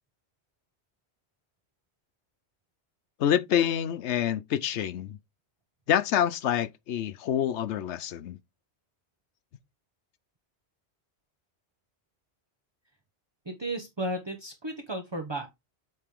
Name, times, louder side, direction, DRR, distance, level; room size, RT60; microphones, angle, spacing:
voice 1, 3.2-5.2 5.9-8.4, left 10 dB, 90° left, 1.0 m, -27 dB
voice 2, 13.5-15.5, right 1 dB, 25° right, 1.0 m, -34 dB
7.6 x 5.0 x 3.7 m
omnidirectional pair, 1.1 m